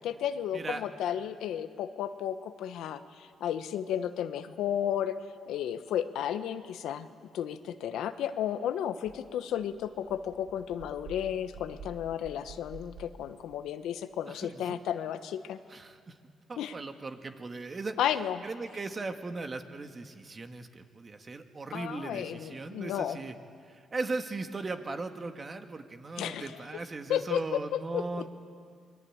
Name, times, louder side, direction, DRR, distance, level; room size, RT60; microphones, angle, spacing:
voice 1, 0.0-5.2 5.5-7.1 7.3-15.6 16.6-16.7 18.0-18.4 21.7-23.2 26.2-26.5 27.1-28.3, left 10 dB, 80° left, 10 dB, 1.1 m, -33 dB
sound 1, 9.1-9.2 9.5-13.6, right 3 dB, 75° right, 3.4 m, -49 dB
voice 2, 14.3-14.8 15.7-16.2 16.5-18.0 18.4-23.3 23.7-28.3, right 3 dB, 35° right, 6 dB, 1.9 m, -38 dB
26.0 x 22.0 x 8.8 m, 2.1 s
cardioid pair, 90°, 0 cm